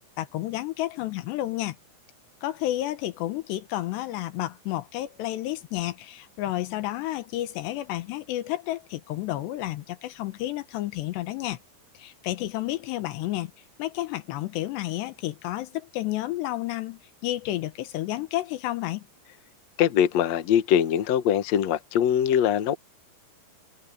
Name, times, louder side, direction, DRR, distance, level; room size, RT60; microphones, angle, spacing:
voice 1, 0.0-1.8 2.4-11.6 11.9-13.5 13.8-19.1, left 15 dB, 80° left, 3.3 m, -31 dB
voice 2, 19.8-22.7, left 9 dB, 65° left, 1.7 m, -22 dB
omnidirectional pair, 4.9 m